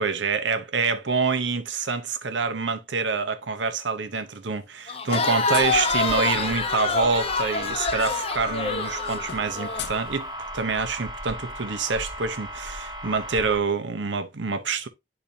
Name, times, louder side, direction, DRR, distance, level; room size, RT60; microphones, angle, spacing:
voice 1, 0.0-14.9, right 4 dB, 85° right, 0.8 m, -26 dB
sound 1, 4.0-4.8 5.1-5.9 7.3-7.4 7.6-7.8 8.1-10.7, left 8 dB, 65° left, 0.7 m, -41 dB
Crowd, 4.9-9.8, left 4 dB, 35° left, 0.7 m, -26 dB
sound 2, 5.5-13.6, equal, 25° right, 1.4 m, -36 dB
10.0 x 4.1 x 2.7 m
head